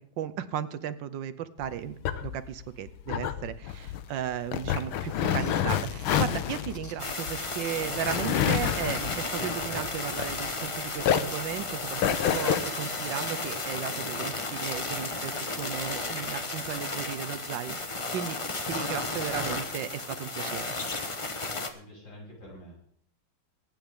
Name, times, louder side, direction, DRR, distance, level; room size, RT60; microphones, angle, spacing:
voice 1, 0.2-12.0 12.3-18.4 18.7-20.7, right 10 dB, 70° right, 13 dB, 1.3 m, -35 dB
sound 1, 1.6-10.7 11.0-12.6, left 9 dB, 85° left, 1.7 m, -29 dB
sound 2, 5.1-7.9, left 1 dB, 10° left, 1.5 m, -52 dB
sound 3, 7.0-21.7, left 3 dB, 25° left, 0.6 m, -33 dB
voice 2, 21.5-22.8, equal, 65° left, -5 dB, 6.8 m, -48 dB
23.5 x 9.2 x 3.6 m, 0.64 s
omnidirectional pair, 2.2 m